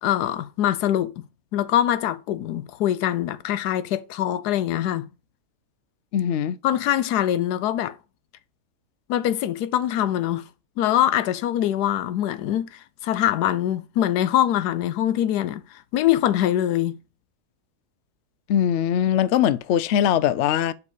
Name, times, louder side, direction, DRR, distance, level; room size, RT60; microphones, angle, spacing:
voice 1, 0.0-1.2 1.5-5.1 6.6-7.9 9.1-10.5 10.8-17.0, left 12 dB, 85° left, 1.2 m, -23 dB
voice 2, 6.1-6.6 18.5-20.7, left 10 dB, 70° left, 0.6 m, -21 dB
5.6 x 4.0 x 6.1 m
omnidirectional pair, 1.7 m